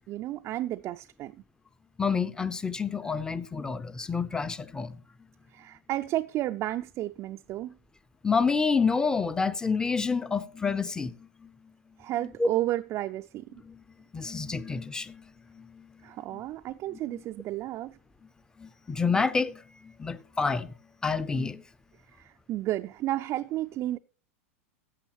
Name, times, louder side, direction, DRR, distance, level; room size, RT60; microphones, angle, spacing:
voice 1, 0.1-1.3 5.5-7.8 12.0-13.5 16.0-18.0 22.2-24.0, right 14 dB, 35° right, 0.4 m, -32 dB
voice 2, 2.0-5.0 8.2-11.5 12.4-12.5 13.6-13.8 14.1-15.2 15.5-15.9 16.3-16.4 17.1-17.2 18.6-20.7 21.0-21.6, left 5 dB, 10° left, 0.5 m, -28 dB
14.5 x 8.3 x 3.1 m
hypercardioid pair, 110°, 8 cm